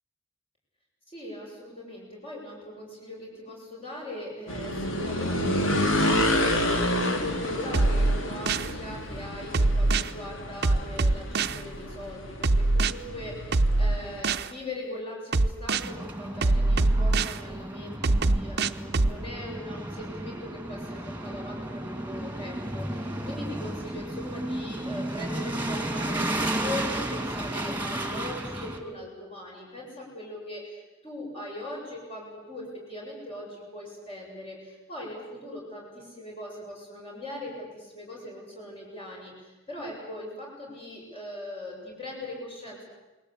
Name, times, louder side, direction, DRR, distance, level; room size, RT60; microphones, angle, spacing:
voice 1, 1.1-42.8, left 1 dB, 30° left, -2 dB, 7.4 m, -40 dB
sound 1, 4.5-14.2, left 1 dB, 80° left, 3.3 m, -29 dB
sound 2, 7.7-8.7 9.5-10.1 10.6-11.6 12.4-12.9 13.5-14.5 15.3-15.9 16.4-17.4 18.0-19.1, right 2 dB, 55° right, 0.8 m, -23 dB
sound 3, 15.8-28.8, right 1 dB, 10° right, 2.8 m, -33 dB
29.0 x 20.5 x 8.4 m, 1.1 s
head